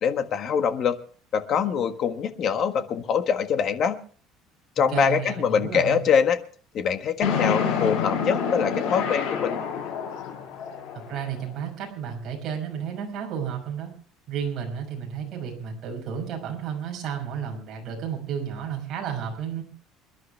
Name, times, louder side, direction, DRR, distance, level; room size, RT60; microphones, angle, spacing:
voice 1, 0.0-1.0 1.3-4.0 4.8-6.4 6.7-9.6, left 7 dB, 35° left, 8 dB, 1.5 m, -24 dB
voice 2, 4.9-6.0 11.1-13.9 14.3-19.6, right 8 dB, 35° right, 1 dB, 6.1 m, -32 dB
sound 1, 7.2-11.4, left 6 dB, 80° left, 6.2 m, -27 dB
28.0 x 11.5 x 3.4 m, 0.42 s
cardioid pair, 170°, 0 cm